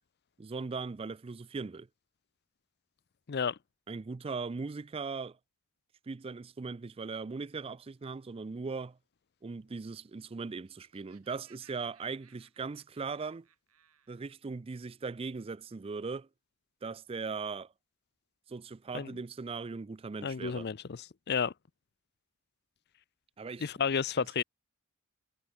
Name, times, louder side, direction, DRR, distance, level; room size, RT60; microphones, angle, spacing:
voice 1, 0.4-1.9 3.9-5.4 6.1-9.0 9.4-13.5 14.1-16.3 16.8-17.7 18.5-20.7 23.4-23.7 24.2-24.3, right 4 dB, 25° right, 0.3 m, -39 dB
voice 2, 3.3-3.6 18.9-19.1 20.2-21.5 23.6-24.4, left 6 dB, 50° left, 0.5 m, -32 dB
Laughter, 10.5-14.3, right 9 dB, 80° right, 3.8 m, -64 dB
head